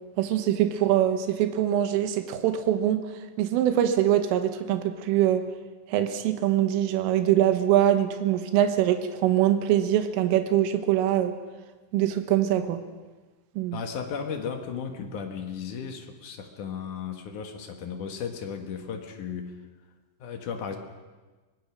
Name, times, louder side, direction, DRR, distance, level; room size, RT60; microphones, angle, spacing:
voice 1, 0.2-3.0 3.4-5.5 5.9-11.4 11.9-12.8 13.6-13.8, right 11 dB, 90° right, 8 dB, 3.7 m, -23 dB
voice 2, 13.7-19.6 20.2-20.8, left 6 dB, 60° left, 4 dB, 2.2 m, -35 dB
24.0 x 19.0 x 6.3 m, 1.3 s
omnidirectional pair, 5.7 m